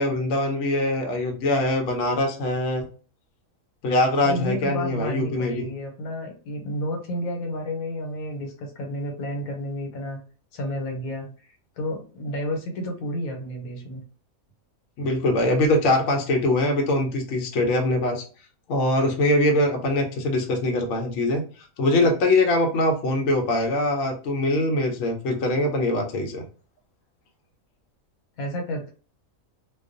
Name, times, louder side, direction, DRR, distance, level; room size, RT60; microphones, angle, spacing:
voice 1, 0.0-2.9 3.8-5.7 15.0-18.2 18.7-21.4 21.8-26.4, left 1 dB, 65° left, 2 dB, 0.9 m, -23 dB
voice 2, 4.2-10.2 10.5-14.0 28.4-28.9, equal, 85° left, 2 dB, 1.1 m, -31 dB
2.3 x 2.2 x 2.5 m, 0.37 s
omnidirectional pair, 1.5 m